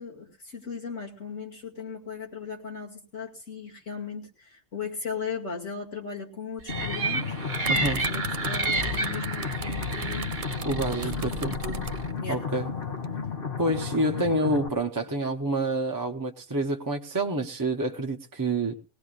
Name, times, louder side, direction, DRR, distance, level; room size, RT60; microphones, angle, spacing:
voice 1, 0.0-7.4 7.7-10.7 11.0-11.9 12.2-12.4, left 5 dB, 75° left, 0 dB, 2.8 m, -38 dB
sound 1, 6.7-14.7, left 5 dB, 50° left, 1.4 m, -33 dB
sound 2, 6.7-12.1, right 3 dB, 40° right, 1.3 m, -31 dB
sound 3, 7.2-11.9 12.8-13.0, right 6 dB, 65° right, 1.1 m, -39 dB
voice 2, 7.7-8.0 10.6-11.5 12.3-12.7 13.6-18.8, right 2 dB, 20° right, 3 dB, 0.8 m, -28 dB
21.0 x 18.0 x 2.5 m, 0.33 s
omnidirectional pair, 1.3 m